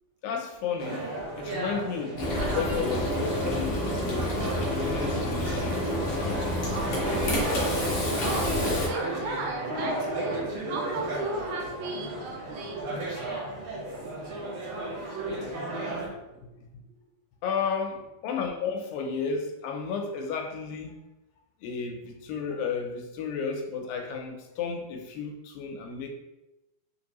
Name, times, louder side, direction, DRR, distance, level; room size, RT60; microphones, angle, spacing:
voice 1, 0.2-1.1 1.4-6.5 15.9-16.0 17.4-21.0 21.6-26.1, left 5 dB, 85° left, 3 dB, 2.3 m, -33 dB
sound 1, 0.8-16.1, right 2 dB, 60° right, 1.8 m, -34 dB
Frying (food), 2.2-8.9, left 1 dB, 65° left, 1.5 m, -29 dB
voice 2, 8.2-12.9 14.3-14.5 16.3-16.5, right 3 dB, 85° right, 1 dB, 2.5 m, -36 dB
5.6 x 2.6 x 2.9 m, 0.99 s
omnidirectional pair, 4.0 m